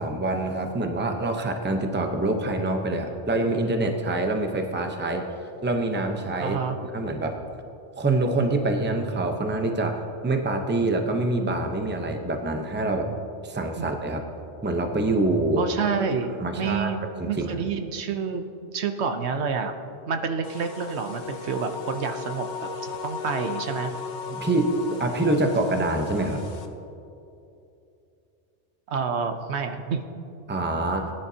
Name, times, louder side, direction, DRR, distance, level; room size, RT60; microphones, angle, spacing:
voice 1, 0.0-5.2 5.6-6.6 6.9-7.4 8.0-13.2 13.4-14.3 14.6-15.7 16.4-17.7 24.3-26.4 30.5-31.1, right 2 dB, 10° right, 4 dB, 0.7 m, -25 dB
voice 2, 6.4-6.8 13.8-13.9 15.6-18.4 18.7-19.8 20.1-22.7 23.0-23.9 28.9-30.0, right 5 dB, 70° right, 7 dB, 1.0 m, -28 dB
sound 1, 20.4-26.7, left 5 dB, 45° left, 0.9 m, -36 dB
19.0 x 10.5 x 2.8 m, 2.7 s
omnidirectional pair, 1.2 m